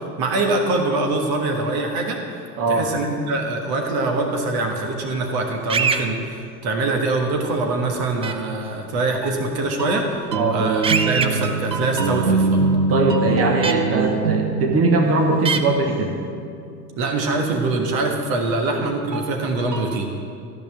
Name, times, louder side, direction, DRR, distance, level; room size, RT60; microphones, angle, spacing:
voice 1, 0.2-2.2 2.7-12.6 13.2-13.4 17.0-20.1, right 2 dB, 50° right, 2 dB, 1.5 m, -23 dB
voice 2, 2.6-2.9 10.3-10.6 12.9-16.2, right 3 dB, 30° right, 2 dB, 1.4 m, -20 dB
sound 1, 5.7-6.0 8.2-8.3 10.8-11.3 13.6-13.7 15.5-15.6, right 5 dB, 15° right, 0.4 m, -21 dB
sound 2, 9.2-16.9 19.1-20.0, right 3 dB, 85° right, 0.7 m, -24 dB
13.5 x 5.5 x 7.6 m, 2.4 s
figure-of-eight pair, 70°, 48 cm